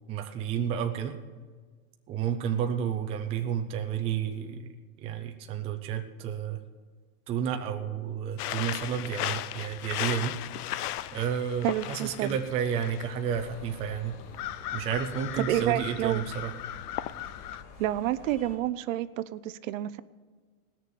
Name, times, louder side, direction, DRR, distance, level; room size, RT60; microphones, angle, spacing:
voice 1, 0.1-1.1 2.1-4.7 5.0-6.6 7.3-10.3 11.1-14.2 14.7-16.5, right 8 dB, 15° right, 5 dB, 0.4 m, -31 dB
sound 1, 8.4-17.6, left 13 dB, 90° left, 0.7 m, -37 dB
voice 2, 11.6-12.4 15.4-16.3 17.8-20.0, right 14 dB, 60° right, 15 dB, 0.6 m, -29 dB
sound 2, 13.2-18.6, left 4 dB, 35° left, 3.4 m, -48 dB
18.5 x 6.8 x 7.1 m, 1.5 s
supercardioid pair, 150°, 44 cm